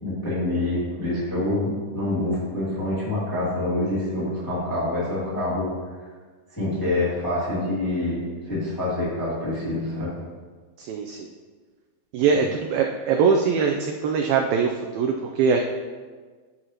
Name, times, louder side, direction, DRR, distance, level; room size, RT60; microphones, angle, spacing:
voice 1, 0.0-5.7 6.5-10.1, left 1 dB, 10° left, -9 dB, 1.3 m, -26 dB
voice 2, 10.8-11.3 12.1-15.6, right 5 dB, 85° right, 3 dB, 2.1 m, -22 dB
11.0 x 6.2 x 2.9 m, 1.5 s
omnidirectional pair, 4.8 m